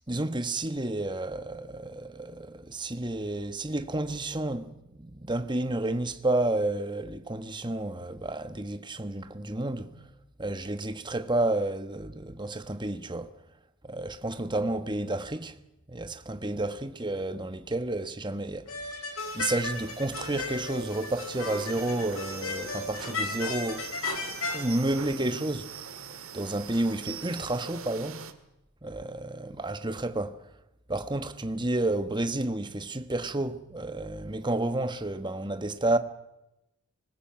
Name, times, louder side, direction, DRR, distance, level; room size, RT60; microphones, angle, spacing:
voice 1, 0.1-10.0 10.4-13.3 13.8-15.6 15.9-19.0 19.3-23.9 24.5-25.8 26.3-28.2 28.8-30.4 30.9-36.0, right 2 dB, 20° right, 1.3 m, -31 dB
sound 1, 18.7-24.6, left 4 dB, 70° left, 5.0 m, -35 dB
sound 2, 19.2-28.3, right 6 dB, 70° right, 1.9 m, -42 dB
25.0 x 20.5 x 5.8 m
head